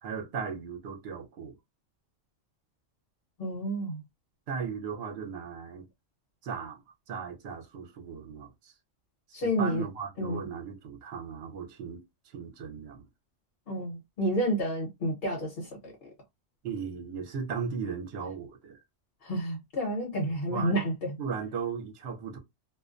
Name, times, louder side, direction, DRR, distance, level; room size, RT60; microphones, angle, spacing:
voice 1, 0.0-1.6 4.5-5.9 6.4-6.8 7.1-8.7 9.3-12.0 12.3-13.1 16.6-18.8 20.3-20.8 21.2-22.4, right 6 dB, 60° right, 0.9 m, -37 dB
voice 2, 3.4-4.0 9.3-9.8 10.2-10.4 13.7-15.9 19.2-21.2, equal, 50° left, 1.1 m, -30 dB
2.4 x 2.1 x 2.5 m
omnidirectional pair, 1.3 m